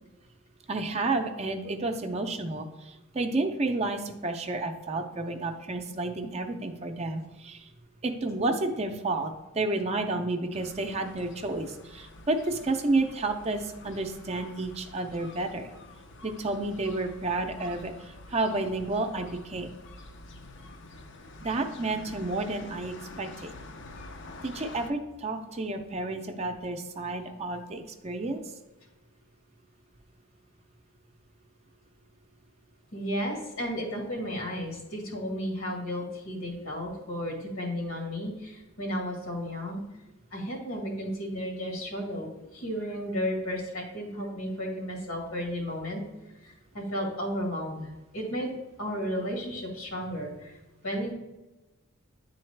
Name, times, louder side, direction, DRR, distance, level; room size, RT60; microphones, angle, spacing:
voice 1, 0.7-7.7 8.0-15.7 16.2-19.7 21.4-23.6 24.4-28.4, right 2 dB, 30° right, 5 dB, 0.5 m, -31 dB
sound 1, 10.5-24.9, left 2 dB, 55° left, 0.5 m, -48 dB
voice 2, 32.9-39.8 40.3-46.0 46.4-50.6 50.8-51.1, equal, 85° left, 0 dB, 1.8 m, -33 dB
9.4 x 3.9 x 3.3 m, 1.1 s
head